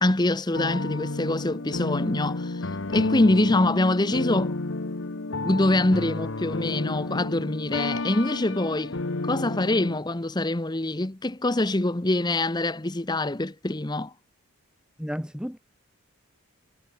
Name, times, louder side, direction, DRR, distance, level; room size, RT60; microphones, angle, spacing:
voice 1, 0.0-2.6 2.9-4.6 5.4-8.9 9.2-14.1, left 2 dB, 20° left, 0.8 m, -25 dB
sound 1, 0.5-10.0, left 2 dB, 55° left, 1.0 m, -31 dB
voice 2, 15.0-15.6, equal, 5° right, 5.7 m, -32 dB
head